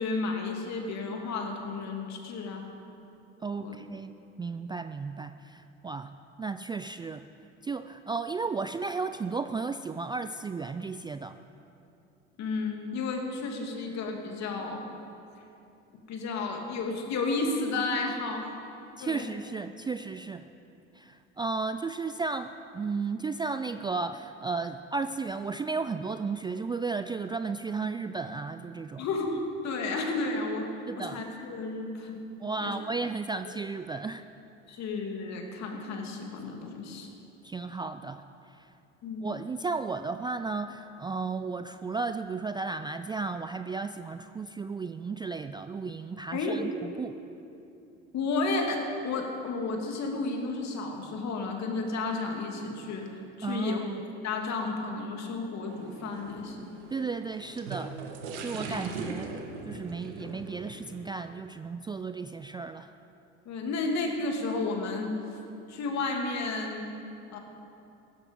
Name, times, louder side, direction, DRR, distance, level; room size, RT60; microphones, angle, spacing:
voice 1, 0.0-2.6 3.5-3.8 12.4-14.8 16.1-18.5 19.0-19.3 29.0-32.2 32.6-32.7 34.7-37.1 39.0-39.4 46.3-46.6 48.1-53.9 54.2-56.7 58.7-58.8 63.4-65.4 65.7-66.9 67.3-67.4, left 3 dB, 50° left, 2 dB, 2.7 m, -32 dB
voice 2, 3.4-7.3 7.6-11.4 19.0-20.5 20.9-29.0 30.9-31.2 32.4-34.3 37.4-38.7 39.2-47.1 53.4-54.0 56.9-58.0 58.4-59.3 59.7-62.9, right 4 dB, 15° right, 10 dB, 0.3 m, -34 dB
sound 1, 55.7-61.0, right 4 dB, 85° right, 1.8 m, -40 dB
16.0 x 13.0 x 5.4 m, 2.8 s
hypercardioid pair, 85°, 34 cm